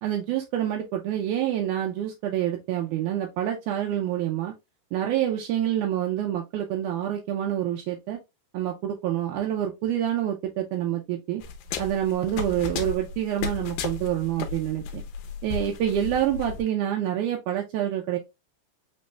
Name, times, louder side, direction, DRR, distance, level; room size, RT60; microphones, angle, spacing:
voice 1, 0.0-4.5 4.9-8.2 8.5-11.4 11.8-15.0 15.4-18.2, right 11 dB, 80° right, 1 dB, 1.9 m, -27 dB
sound 1, 11.4-16.6, left 6 dB, 80° left, 1.8 m, -34 dB
5.4 x 3.0 x 2.3 m, 0.23 s
omnidirectional pair, 4.0 m